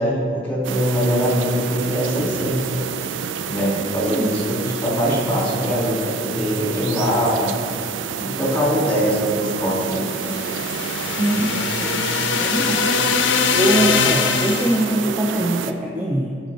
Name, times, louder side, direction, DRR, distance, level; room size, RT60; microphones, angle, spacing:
voice 1, 0.0-2.6 3.4-7.5 8.2-10.0, equal, 10° left, -6 dB, 2.0 m, -22 dB
sound 1, 0.6-15.7, right 7 dB, 90° right, 0.4 m, -29 dB
voice 2, 3.9-4.3 11.2-12.0 12.4-12.9 13.5-16.4, right 1 dB, 10° right, -3 dB, 0.5 m, -22 dB
sound 2, 10.0-14.9, left 6 dB, 90° left, 0.5 m, -22 dB
8.8 x 5.3 x 4.2 m, 2.4 s
head